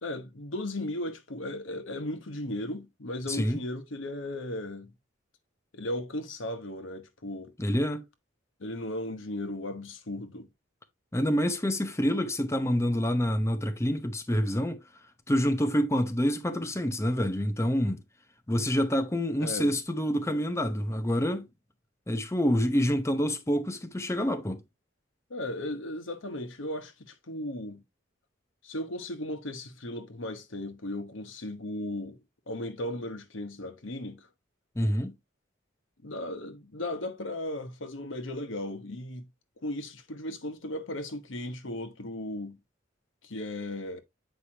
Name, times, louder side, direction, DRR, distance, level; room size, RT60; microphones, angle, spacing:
voice 1, 0.0-4.9 5.7-7.5 8.6-10.5 19.4-19.7 25.3-27.8 28.6-34.3 36.0-39.3 39.6-42.6 43.2-44.0, left 1 dB, 75° left, 1.2 m, -36 dB
voice 2, 3.3-3.6 7.6-8.0 11.1-14.8 15.3-18.0 18.5-21.5 22.1-24.6 34.8-35.1, equal, 15° left, 0.8 m, -27 dB
8.2 x 4.9 x 2.8 m
head